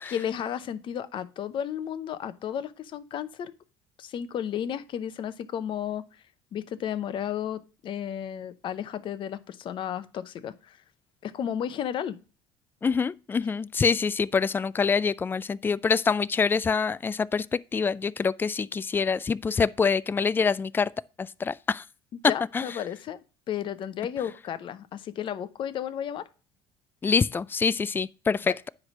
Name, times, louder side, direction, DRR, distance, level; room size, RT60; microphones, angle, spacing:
voice 1, 0.1-3.5 4.0-6.0 6.5-10.8 11.2-12.2 22.2-23.2 23.5-26.2 28.4-28.6, left 9 dB, 50° left, 0.7 m, -33 dB
voice 2, 12.8-20.9 21.2-21.8 22.5-22.6 27.0-28.7, left 5 dB, 20° left, 0.3 m, -25 dB
9.6 x 3.4 x 6.1 m
supercardioid pair, 105°, 11 cm